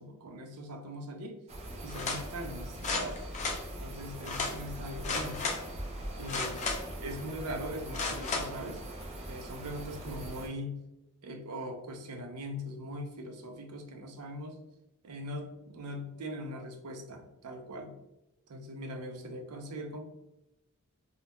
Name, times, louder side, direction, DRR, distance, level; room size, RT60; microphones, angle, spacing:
voice 1, 0.0-1.4 1.8-3.2 3.8-5.6 6.2-6.6 7.0-8.8 9.3-10.8 11.2-14.6 15.0-18.0 18.5-20.0, equal, 90° right, 4 dB, 0.5 m, -41 dB
sound 1, 1.5-10.5, right 1 dB, 30° right, 0.4 m, -42 dB
sound 2, 1.9-2.2 2.8-3.6 4.3-4.5 5.0-5.6 6.2-7.0 7.9-8.5 9.0-9.1, left 4 dB, 35° left, 0.4 m, -33 dB
2.3 x 2.1 x 2.8 m, 0.93 s
head